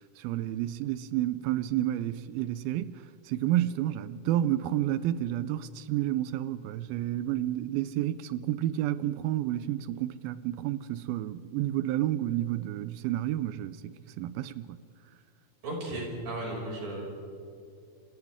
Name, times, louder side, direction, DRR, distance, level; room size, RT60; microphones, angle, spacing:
voice 1, 0.2-14.8, right 13 dB, 85° right, 2.5 m, -30 dB
voice 2, 15.6-17.0, right 1 dB, 70° right, 7.9 m, -35 dB
29.5 x 25.0 x 3.6 m
omnidirectional pair, 4.3 m